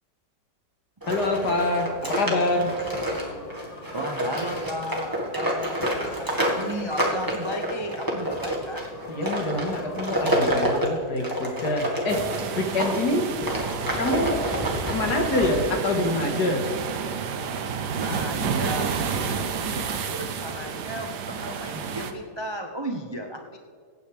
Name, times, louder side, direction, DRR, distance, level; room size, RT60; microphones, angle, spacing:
sound 1, 1.0-13.0 13.4-15.9, equal, 10° right, 1.7 m, -28 dB
voice 1, 1.1-2.7 9.1-12.2 12.6-13.3 14.0-14.4 14.9-16.6, left 2 dB, 65° left, 3 dB, 2.2 m, -25 dB
sound 2, 1.9-10.7, left 3 dB, 85° left, 2.1 m, -44 dB
voice 2, 3.9-8.9 12.5-12.6 18.0-23.6, right 1 dB, 35° right, 3 dB, 0.4 m, -35 dB
sound 3, 12.1-22.1, right 6 dB, 70° right, 1.4 m, -30 dB
23.0 x 9.3 x 3.5 m, 2.2 s
omnidirectional pair, 1.9 m